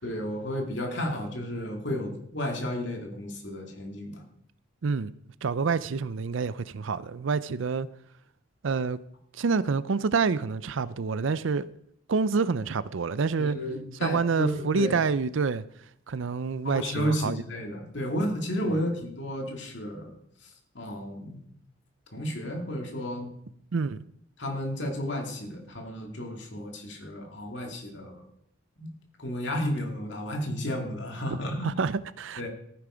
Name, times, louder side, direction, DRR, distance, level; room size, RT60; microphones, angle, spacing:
voice 1, 0.0-4.2 13.4-15.0 16.6-20.1 20.4-20.5 20.7-21.4 22.1-23.3 24.4-28.2 28.8-28.9 29.2-31.7 32.4-32.5, equal, 60° left, 2.6 m, -32 dB
voice 2, 5.4-7.9 8.6-9.0 9.3-11.7 12.1-13.6 14.0-15.6 16.1-17.4 18.6-18.8 23.7-24.0 31.6-32.5, right 5 dB, 70° right, 0.5 m, -27 dB
14.5 x 9.5 x 5.1 m
head